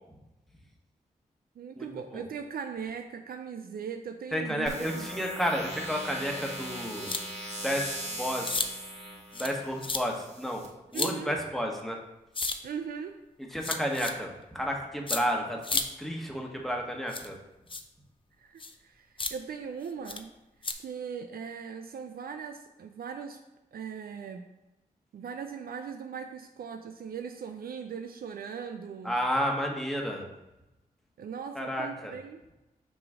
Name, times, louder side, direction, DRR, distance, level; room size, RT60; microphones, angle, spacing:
voice 1, 1.6-5.1 10.9-11.4 12.6-13.2 18.4-20.3 20.8-23.4 23.7-24.4 25.1-29.2 31.2-32.4, right 6 dB, 70° right, 6 dB, 0.5 m, -39 dB
voice 2, 4.3-7.2 7.6-8.7 9.3-10.6 10.9-12.0 13.5-15.6 16.0-17.3 29.0-30.3 31.5-32.1, equal, ahead, 0 dB, 1.3 m, -31 dB
sound 1, 4.7-10.7, right 1 dB, 45° right, 1.8 m, -39 dB
sound 2, 7.1-7.2 7.8-7.9 8.4-8.7 9.3-9.6 9.8-10.0 10.9-11.1 12.3-12.6 13.6-14.1 15.1-15.2 15.6-15.8 17.1-17.3 17.7-17.8 18.6-18.7 19.2-19.3 20.1-20.2 20.6-20.7, left 3 dB, 35° left, 0.6 m, -31 dB
6.0 x 3.1 x 5.0 m, 1.0 s
cardioid pair, 45°, 16 cm